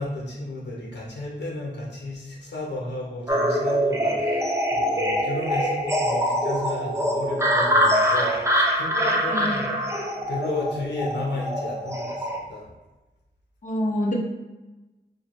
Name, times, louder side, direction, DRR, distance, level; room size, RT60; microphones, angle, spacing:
voice 1, 0.0-12.7, left 2 dB, 80° left, -3 dB, 0.8 m, -33 dB
sound 1, 3.3-12.4, equal, 15° right, 0.5 m, -24 dB
voice 2, 9.3-9.7 13.6-14.1, left 1 dB, 45° left, -1 dB, 0.8 m, -27 dB
4.5 x 2.2 x 3.0 m, 1.1 s
wide cardioid pair, 75°, 18 cm